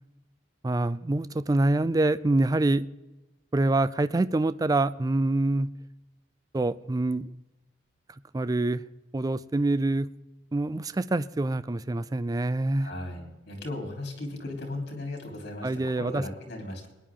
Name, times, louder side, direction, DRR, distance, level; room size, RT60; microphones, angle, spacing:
voice 1, 0.6-2.9 3.5-5.7 6.5-7.3 8.3-8.8 9.1-10.1 10.5-12.9 15.6-16.2, right 2 dB, 20° right, 0.4 m, -25 dB
voice 2, 12.8-16.9, left 1 dB, 60° left, 3.6 m, -37 dB
21.5 x 10.5 x 3.7 m
head